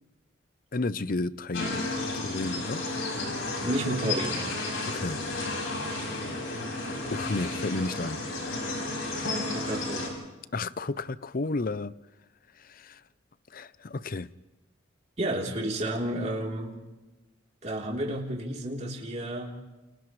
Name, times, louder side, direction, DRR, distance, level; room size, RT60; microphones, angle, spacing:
voice 1, 0.7-1.9 2.1-2.9 4.8-5.2 7.1-8.2 10.5-12.0 12.6-13.0 13.5-14.3, left 3 dB, 45° left, 0.6 m, -32 dB
sound 1, 1.5-10.1, left 2 dB, 80° left, 6.0 m, -32 dB
voice 2, 3.6-4.5 5.9-6.1 9.5-10.2 15.2-16.7 17.6-19.5, right 1 dB, 35° right, 3.6 m, -31 dB
30.0 x 29.5 x 3.3 m
head